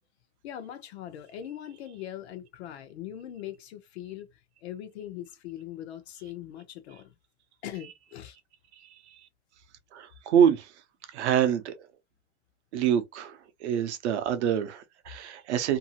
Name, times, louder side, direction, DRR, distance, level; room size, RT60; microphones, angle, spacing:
voice 1, 0.4-4.3 4.6-7.1 7.6-8.4, left 11 dB, 50° left, 0.6 m, -41 dB
voice 2, 9.9-10.7 11.1-11.9 12.7-15.8, right 9 dB, 55° right, 0.7 m, -26 dB
2.7 x 2.3 x 2.7 m
supercardioid pair, 165°, 41 cm